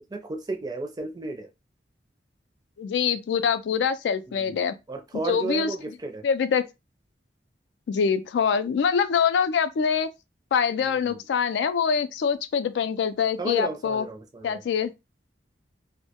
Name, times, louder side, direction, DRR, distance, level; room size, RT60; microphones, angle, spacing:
voice 1, 0.1-1.5 4.3-4.6 4.9-6.2 10.9-11.2 13.4-14.6, right 2 dB, 20° right, 0.4 m, -33 dB
voice 2, 2.8-4.7 5.2-5.9 6.2-6.6 7.9-10.1 10.5-14.1 14.4-14.9, left 6 dB, 85° left, 0.3 m, -24 dB
2.2 x 2.1 x 2.7 m
head